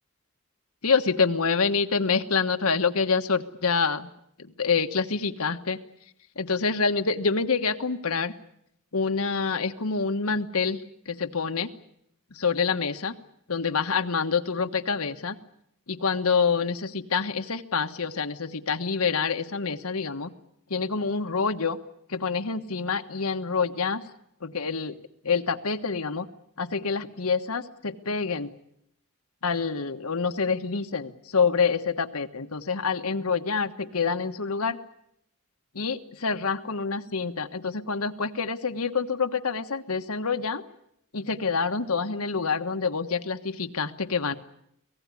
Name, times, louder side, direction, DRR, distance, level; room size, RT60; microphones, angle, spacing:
voice 1, 0.8-4.1 4.6-5.8 6.4-8.3 8.9-10.8 11.1-11.7 12.3-13.1 13.5-15.3 15.9-20.3 20.7-21.8 22.1-24.0 24.4-25.0 25.2-26.3 26.6-28.5 29.4-34.8 35.7-40.6 41.1-44.3, left 5 dB, 85° left, 7 dB, 1.4 m, -27 dB
25.0 x 18.0 x 9.8 m, 0.76 s
head